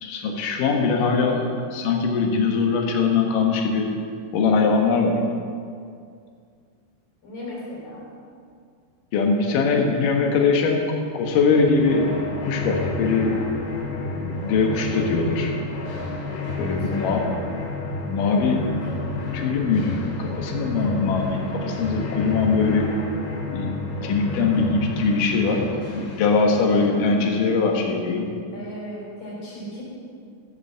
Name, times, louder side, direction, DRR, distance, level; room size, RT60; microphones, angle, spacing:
voice 1, 0.0-3.9 4.3-5.2 9.1-12.2 12.4-13.5 13.9-15.5 16.6-17.3 17.8-18.7 19.3-22.9 23.5-23.7 24.0-28.3, left 4 dB, 65° left, 2 dB, 2.2 m, -22 dB
voice 2, 7.2-8.0 16.7-17.3 26.7-27.4 28.5-29.8, left 1 dB, 40° left, -5 dB, 4.6 m, -37 dB
sound 1, 11.2-27.0, left 3 dB, 85° left, 4.4 m, -31 dB
14.0 x 7.9 x 6.9 m, 2.2 s
omnidirectional pair, 5.7 m